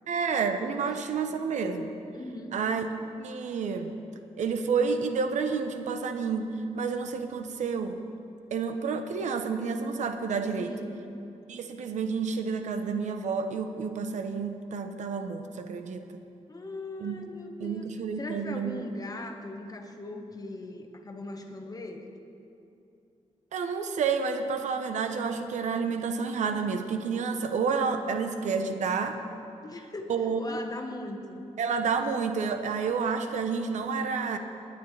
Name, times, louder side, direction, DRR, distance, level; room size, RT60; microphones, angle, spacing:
voice 1, 0.1-1.9 2.5-2.8 3.2-3.9 4.4-6.5 6.7-8.0 8.5-10.7 11.5-16.1 17.0-17.2 17.6-18.8 23.5-29.2 30.1-30.5 31.6-34.4, right 5 dB, 85° right, 7 dB, 0.8 m, -29 dB
voice 2, 2.1-2.6 10.6-11.1 16.5-17.9 18.2-22.1 29.6-31.4, left 2 dB, 30° left, 4 dB, 1.3 m, -39 dB
19.5 x 9.5 x 3.3 m, 2.6 s
cardioid pair, 80°, 12 cm